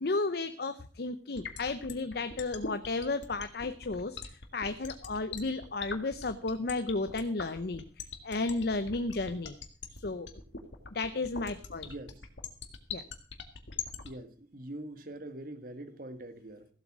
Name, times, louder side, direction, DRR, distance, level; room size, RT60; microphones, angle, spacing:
voice 1, 0.0-9.6 9.9-10.3 10.9-11.9 12.9-13.0, left 3 dB, 55° left, 10 dB, 0.7 m, -33 dB
sound 1, 1.4-14.1, left 6 dB, 75° left, 1.9 m, -40 dB
voice 2, 11.8-12.2 14.0-16.7, right 1 dB, 50° right, 10 dB, 1.6 m, -43 dB
15.5 x 8.0 x 6.2 m, 0.43 s
head